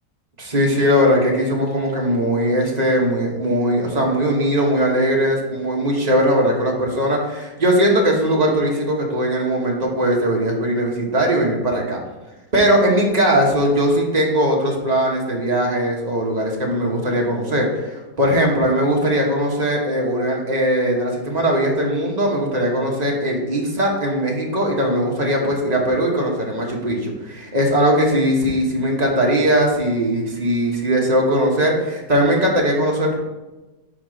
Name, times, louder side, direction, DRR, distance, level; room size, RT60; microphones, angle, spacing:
voice 1, 0.4-12.0 12.5-33.2, equal, 25° right, -1 dB, 1.1 m, -19 dB
5.1 x 5.1 x 4.9 m, 1.1 s
omnidirectional pair, 1.9 m